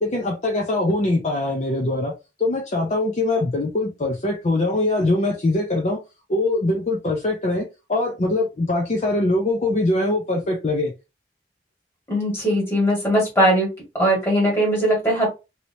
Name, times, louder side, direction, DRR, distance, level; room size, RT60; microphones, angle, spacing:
voice 1, 0.0-2.1 2.4-6.0 6.3-10.9, left 2 dB, 40° left, 0.5 m, -22 dB
voice 2, 12.1-13.7 13.9-15.3, equal, 15° left, 1.7 m, -19 dB
3.1 x 2.8 x 2.7 m
head